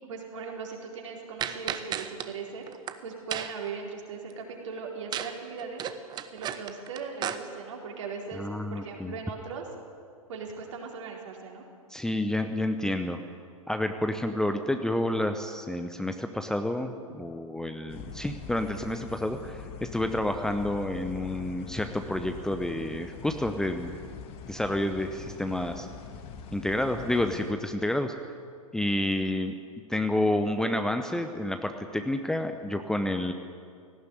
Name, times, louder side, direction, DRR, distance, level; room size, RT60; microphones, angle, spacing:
voice 1, 0.0-2.6 3.0-5.8 6.3-9.7 10.3-11.6, right 5 dB, 60° right, 0 dB, 4.4 m, -39 dB
sound 1, 1.4-2.3 2.7-2.9 3.3-3.7 5.1-5.3 5.6-7.4, right 10 dB, 25° right, 1.1 m, -33 dB
voice 2, 8.4-9.1 11.9-13.2 13.7-23.9 24.5-25.9 26.5-28.1 28.7-29.6 29.9-33.3, left 1 dB, 5° left, 7 dB, 0.9 m, -29 dB
sound 2, 17.9-27.5, left 5 dB, 30° left, 1.9 m, -43 dB
18.0 x 16.5 x 9.3 m, 2.2 s
figure-of-eight pair, 105°, 18 cm